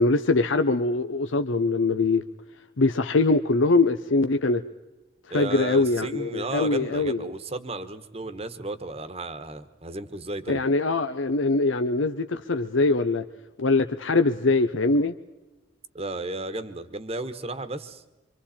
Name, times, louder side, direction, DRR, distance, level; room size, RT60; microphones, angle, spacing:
voice 1, 0.0-2.2 2.8-4.6 5.3-7.3 10.5-13.2 13.6-15.2, left 3 dB, 85° left, 0.8 m, -23 dB
voice 2, 5.3-10.6 15.9-18.0, right 2 dB, 30° right, 1.2 m, -34 dB
26.0 x 25.5 x 4.3 m
head